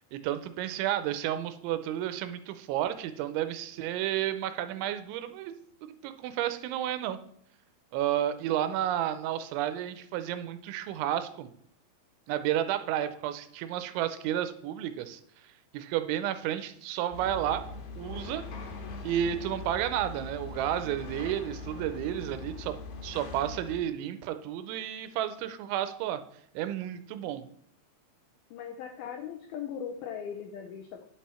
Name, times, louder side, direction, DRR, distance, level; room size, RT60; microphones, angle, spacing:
voice 1, 0.1-5.5 5.8-7.2 7.9-11.5 12.3-15.2 15.7-17.6 18.0-18.4 19.0-22.8 23.0-26.2 26.6-27.5, right 11 dB, 85° right, 11 dB, 3.0 m, -31 dB
sound 1, 17.1-23.8, left 4 dB, 65° left, 2.8 m, -41 dB
voice 2, 28.5-31.0, left 8 dB, 85° left, 4 dB, 2.1 m, -39 dB
9.4 x 7.4 x 4.3 m, 0.66 s
omnidirectional pair, 5.4 m